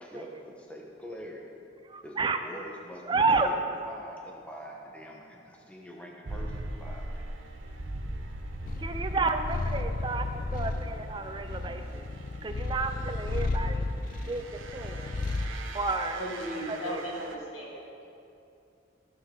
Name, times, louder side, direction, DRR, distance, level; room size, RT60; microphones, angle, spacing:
voice 1, 0.0-1.4 2.0-7.2, equal, 5° left, -2 dB, 0.9 m, -44 dB
voice 2, 1.9-2.4 3.1-3.5 8.8-12.0 12.4-13.8 14.3-15.2 15.7-16.2 16.7-17.0, right 3 dB, 25° right, 7 dB, 0.3 m, -31 dB
sound 1, 6.2-17.4, right 1 dB, 80° right, 0.8 m, -42 dB
Purr, 8.7-15.6, left 2 dB, 45° left, 0.4 m, -33 dB
voice 3, 16.2-17.8, equal, 85° left, -5 dB, 2.6 m, -36 dB
14.5 x 6.5 x 3.8 m, 2.7 s
head